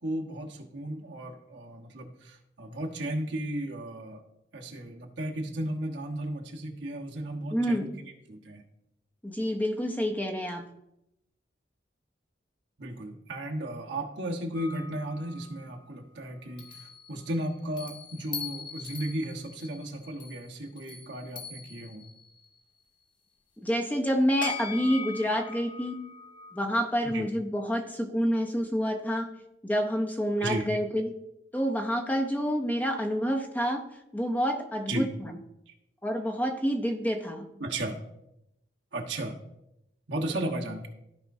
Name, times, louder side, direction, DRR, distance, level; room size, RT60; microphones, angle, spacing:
voice 1, 0.0-4.2 4.5-7.9 8.3-8.6 12.8-22.1 27.0-27.3 30.4-30.7 34.9-35.1 35.7-35.8 37.6-37.9 38.9-39.3 40.1-40.9, right 1 dB, 75° right, 0 dB, 1.3 m, -35 dB
voice 2, 7.5-7.9 9.2-10.6 23.6-26.0 26.5-29.3 29.6-31.1 31.5-33.8 34.1-35.4 36.0-37.5, equal, 10° left, 3 dB, 0.7 m, -28 dB
sound 1, 14.5-15.8 16.6-22.5 24.4-27.2, left 4 dB, 25° left, 1.2 m, -42 dB
14.0 x 5.2 x 2.7 m, 0.84 s
head